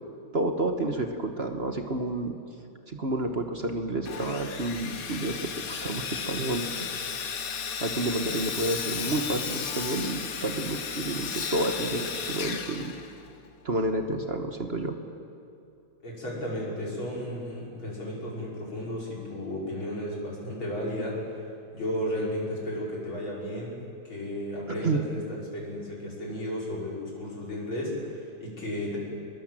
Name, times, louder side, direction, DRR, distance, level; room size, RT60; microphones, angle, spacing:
voice 1, 0.3-2.3 2.9-6.7 7.8-12.9 13.6-15.0 24.8-25.0, right 2 dB, 35° right, 5 dB, 1.3 m, -30 dB
Sawing, 4.0-13.5, left 6 dB, 50° left, 1.4 m, -34 dB
voice 2, 16.0-21.4 21.7-23.8 24.0-29.0, left 1 dB, 90° left, -4 dB, 6.3 m, -33 dB
22.5 x 22.0 x 7.6 m, 2.5 s
omnidirectional pair, 2.1 m